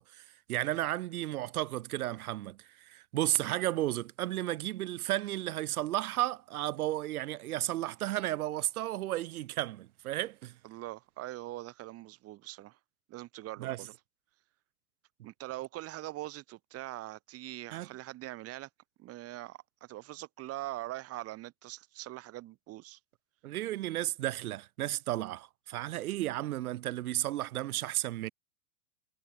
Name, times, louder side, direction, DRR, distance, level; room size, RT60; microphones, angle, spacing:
voice 1, 0.0-10.6 13.6-13.8 17.7-17.9 23.4-28.3, right 15 dB, 65° right, 2.9 m, -33 dB
voice 2, 10.6-12.8 13.1-13.9 15.2-18.7 19.0-23.0, right 16 dB, 30° right, 5.3 m, -42 dB
supercardioid pair, 145°, 47 cm